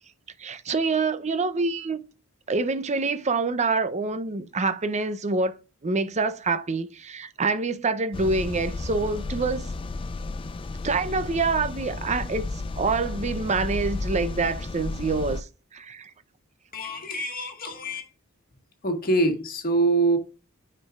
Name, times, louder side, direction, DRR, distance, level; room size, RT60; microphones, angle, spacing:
voice 1, 0.4-2.0 2.5-5.6 5.8-9.7 10.8-16.1, right 3 dB, 30° right, 0.6 m, -26 dB
sound 1, 8.1-15.4, left 3 dB, 25° left, 0.3 m, -33 dB
voice 2, 16.7-18.1 18.8-20.2, right 2 dB, 40° left, 1.6 m, -24 dB
9.6 x 4.5 x 2.4 m
head